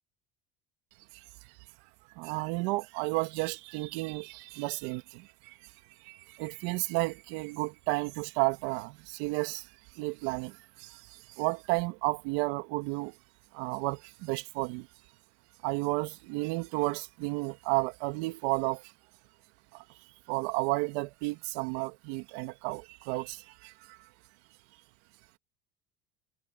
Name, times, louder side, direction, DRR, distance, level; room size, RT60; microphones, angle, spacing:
voice 1, 1.1-1.6 2.1-5.7 6.0-13.2 13.5-14.9 15.6-18.9 19.7-19.8 20.3-24.0, right 24 dB, 75° right, 2.5 m, -32 dB
supercardioid pair, 85°, 29 cm